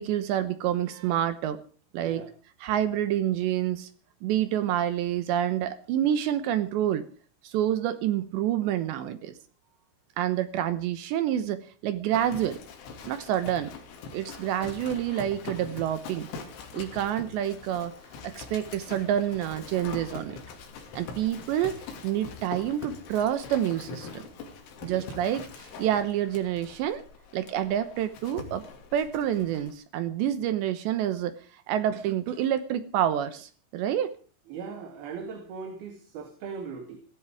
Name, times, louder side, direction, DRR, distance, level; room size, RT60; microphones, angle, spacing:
voice 1, 0.0-1.6 1.9-2.2 2.6-3.9 4.2-7.0 7.4-9.3 10.2-12.6 13.1-13.7 14.1-16.3 16.7-17.9 18.2-20.4 20.9-21.7 22.0-24.2 24.8-27.0 27.3-28.7 28.9-34.1, right 11 dB, 75° right, 12 dB, 3.0 m, -28 dB
Livestock farm animals working animals, 12.1-29.7, left 5 dB, 70° left, 5.1 m, -43 dB
voice 2, 34.5-37.0, right 5 dB, 55° right, 5 dB, 3.9 m, -39 dB
17.0 x 16.0 x 4.8 m, 0.40 s
omnidirectional pair, 5.6 m